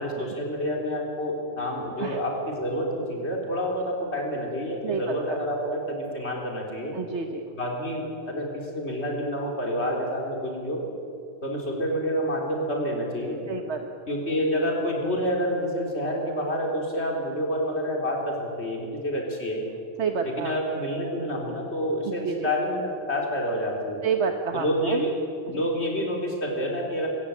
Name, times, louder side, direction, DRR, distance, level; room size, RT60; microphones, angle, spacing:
voice 1, 0.0-7.0 7.5-10.9 11.4-13.4 14.1-19.6 20.2-24.0 24.5-25.2 25.5-27.1, equal, 70° left, -1 dB, 4.3 m, -28 dB
voice 2, 4.8-5.4 6.9-7.4 13.5-13.8 20.0-20.5 22.1-22.5 24.0-25.0 25.5-25.6, right 5 dB, 80° right, 5 dB, 1.4 m, -29 dB
26.0 x 15.0 x 8.5 m, 2.6 s
omnidirectional pair, 1.2 m